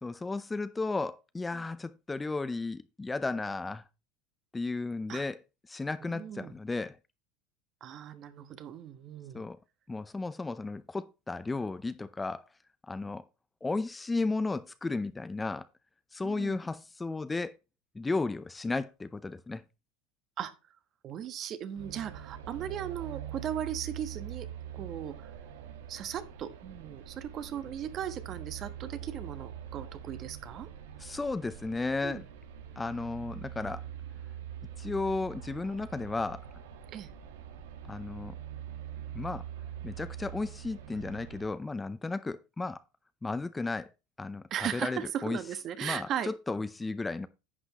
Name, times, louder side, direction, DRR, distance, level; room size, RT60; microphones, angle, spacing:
voice 1, 0.0-3.8 4.5-5.4 5.7-7.0 9.3-9.6 9.9-12.5 12.9-13.2 13.6-15.7 16.1-17.6 17.9-19.6 31.0-32.2 32.8-33.9 34.8-36.4 37.8-38.4 39.1-39.4 39.8-42.8 43.2-43.9 44.2-45.4 45.8-47.3, left 3 dB, 15° left, 0.6 m, -34 dB
voice 2, 6.0-6.5 7.8-9.4 16.2-16.6 20.4-20.5 21.0-24.5 24.7-25.3 25.9-30.7 32.0-32.2 36.9-37.1 44.5-46.3, right 9 dB, 45° right, 1.2 m, -37 dB
sound 1, 21.7-41.5, right 9 dB, 85° right, 1.4 m, -44 dB
11.0 x 8.0 x 3.0 m
supercardioid pair, 110°, 0 cm